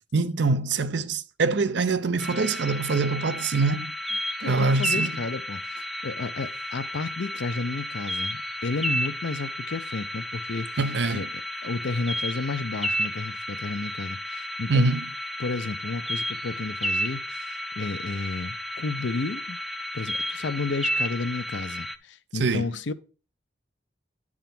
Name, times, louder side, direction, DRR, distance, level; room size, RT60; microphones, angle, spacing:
voice 1, 0.1-3.9 4.4-5.2 10.8-11.2 14.7-15.0 22.3-22.7, right 3 dB, 70° right, 0.6 m, -24 dB
sound 1, 2.2-21.9, equal, ahead, 0.4 m, -32 dB
voice 2, 4.4-10.7 11.1-11.3 11.6-14.9 15.4-19.6 19.9-22.9, left 3 dB, 75° left, 0.6 m, -32 dB
10.0 x 3.7 x 5.9 m
head